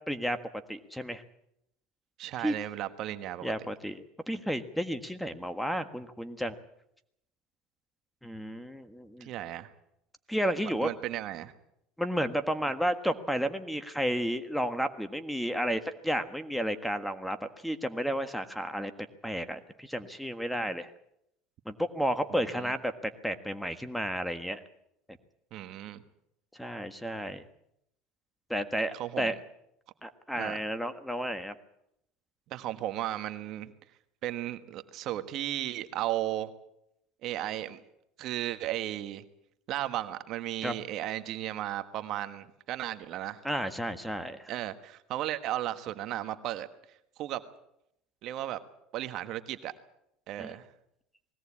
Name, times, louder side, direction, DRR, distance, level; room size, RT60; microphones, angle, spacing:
voice 1, 0.1-0.4 0.7-1.2 2.4-2.5 3.4-6.5 8.2-9.3 10.3-10.9 12.0-18.9 19.2-20.9 21.6-24.6 26.6-27.4 28.5-29.4 30.0-31.5 40.6-40.7 43.4-44.5 50.4-50.5, equal, ahead, 10 dB, 1.5 m, -32 dB
voice 2, 2.2-3.5 9.2-9.7 10.6-11.5 22.3-22.7 25.5-26.0 28.9-29.3 30.3-30.6 32.5-33.7 34.2-36.5 37.2-37.8 38.2-39.2 39.7-43.4 44.5-46.7 47.2-47.4 48.2-48.6 48.9-49.7 50.3-50.7, right 13 dB, 55° right, 10 dB, 1.4 m, -35 dB
20.5 x 17.0 x 8.6 m, 0.78 s
supercardioid pair, 105°, 0 cm